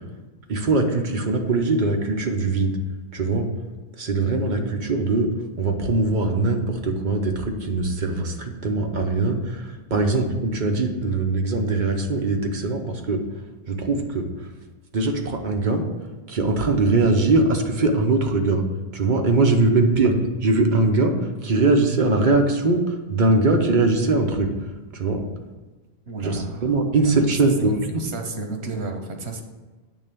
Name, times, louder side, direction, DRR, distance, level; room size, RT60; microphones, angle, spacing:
voice 1, 0.5-2.8 3.1-3.5 4.0-5.3 5.6-13.2 13.7-14.3 14.9-15.9 16.3-18.6 18.9-20.1 20.4-24.5 24.9-25.3 26.2-28.0, right 3 dB, 50° right, 3 dB, 0.9 m, -21 dB
voice 2, 26.1-26.7 27.0-27.3 27.6-29.4, right 3 dB, 85° right, 4 dB, 1.1 m, -32 dB
8.8 x 3.3 x 6.7 m, 1.2 s
omnidirectional pair, 1.1 m